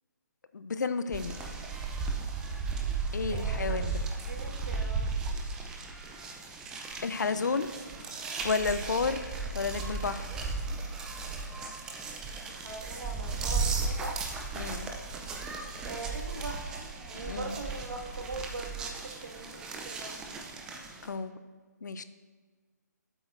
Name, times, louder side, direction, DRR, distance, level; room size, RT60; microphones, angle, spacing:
voice 1, 0.5-1.4 3.1-4.0 7.0-7.7 8.4-10.5 14.6-14.9 17.2-17.6 21.0-21.3 21.8-22.0, left 4 dB, 75° left, 11 dB, 0.6 m, -32 dB
sound 1, 1.1-21.1, right 4 dB, 5° right, 0.4 m, -35 dB
voice 2, 3.3-3.8 4.3-5.1 12.5-14.3 15.8-20.2, right 2 dB, 85° right, 1 dB, 1.7 m, -41 dB
13.0 x 7.9 x 2.5 m, 1.5 s
hypercardioid pair, 165°, 10 cm